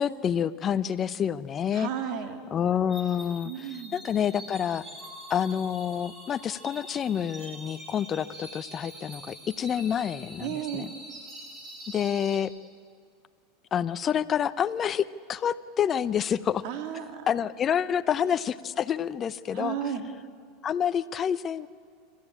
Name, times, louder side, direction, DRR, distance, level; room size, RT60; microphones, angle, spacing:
voice 1, 0.0-1.9 2.5-4.8 5.3-10.9 11.9-12.5 13.7-16.6 17.3-19.8 20.6-21.7, left 8 dB, 35° left, 16 dB, 0.8 m, -28 dB
voice 2, 1.7-2.4 3.4-4.0 10.4-10.9 16.6-17.3 18.1-18.3 19.5-20.1, right 9 dB, 60° right, 6 dB, 2.3 m, -34 dB
sound 1, 2.9-12.4, right 1 dB, 30° right, 6.3 m, -45 dB
27.0 x 14.5 x 8.8 m, 2.1 s
hypercardioid pair, 90°, 0 cm